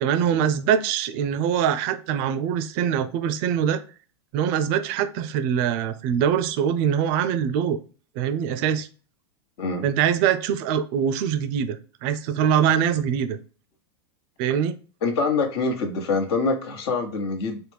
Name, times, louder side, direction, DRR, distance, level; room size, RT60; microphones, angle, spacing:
voice 1, 0.0-3.8 4.3-7.8 8.2-8.9 9.8-13.4 14.4-14.8, right 8 dB, 50° right, 11 dB, 0.5 m, -23 dB
voice 2, 15.0-17.6, left 4 dB, 65° left, 4 dB, 1.0 m, -25 dB
4.1 x 2.1 x 3.2 m, 0.38 s
hypercardioid pair, 105°, 14 cm